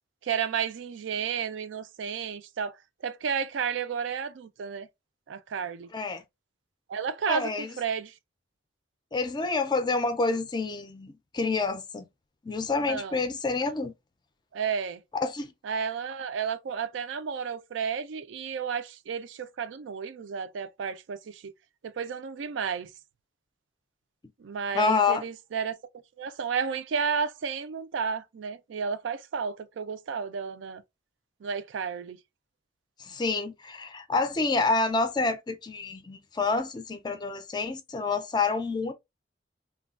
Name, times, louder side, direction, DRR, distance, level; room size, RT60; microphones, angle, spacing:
voice 1, 0.2-2.8 3.0-4.9 5.3-5.9 6.9-8.1 12.8-13.2 14.5-15.0 15.6-21.5 21.8-22.9 24.4-25.7 26.2-30.8 31.4-32.2, right 6 dB, 80° right, 0.4 m, -32 dB
voice 2, 5.9-6.2 7.3-7.7 9.1-12.1 12.4-13.9 15.1-15.5 24.7-25.2 33.0-38.9, left 3 dB, 25° left, 0.4 m, -28 dB
3.2 x 2.2 x 2.3 m
head